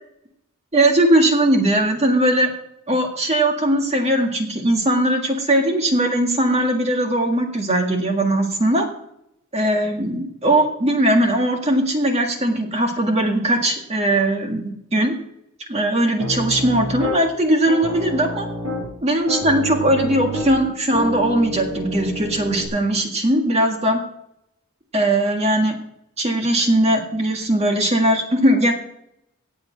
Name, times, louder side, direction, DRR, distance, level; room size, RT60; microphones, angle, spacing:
voice 1, 0.7-2.5 2.9-8.9 9.5-15.1 15.7-18.5 19.0-24.0 24.9-25.8 26.2-28.7, right 1 dB, 30° right, 3 dB, 1.8 m, -19 dB
Piano, 16.2-17.2 17.7-18.9 19.3-22.7, equal, 85° right, 5.3 m, -28 dB
17.5 x 6.9 x 5.8 m, 0.78 s
head